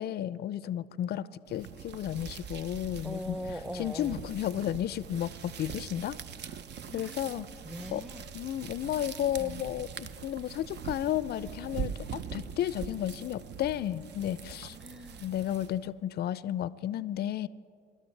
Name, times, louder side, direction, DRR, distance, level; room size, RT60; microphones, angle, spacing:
voice 1, 0.0-3.4 3.7-6.2 6.9-7.5 7.9-8.0 8.3-14.8 15.2-17.5, left 11 dB, 50° left, 18 dB, 0.5 m, -33 dB
sound 1, 1.5-15.9, right 7 dB, 55° right, 0.7 m, -42 dB
voice 2, 3.0-4.2 6.9-8.3 9.4-9.6 14.7-15.2, equal, ahead, 13 dB, 0.7 m, -41 dB
24.0 x 12.0 x 3.3 m, 2.4 s
hypercardioid pair, 55°, 21 cm